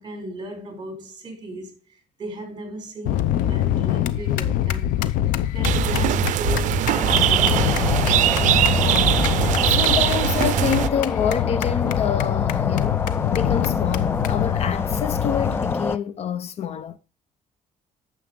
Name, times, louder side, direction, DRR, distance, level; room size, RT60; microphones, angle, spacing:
voice 1, 0.0-5.0 5.5-8.3, right 1 dB, 35° right, 3.8 m, -36 dB
sound 1, 3.0-15.7, left 12 dB, 85° left, 0.7 m, -24 dB
sound 2, 5.6-10.9, right 13 dB, 70° right, 0.5 m, -21 dB
sound 3, 6.9-16.0, left 4 dB, 20° left, 0.4 m, -28 dB
voice 2, 9.6-13.1 13.3-17.0, left 8 dB, 50° left, 0.7 m, -27 dB
9.4 x 7.0 x 3.8 m
cardioid pair, 125°, 13 cm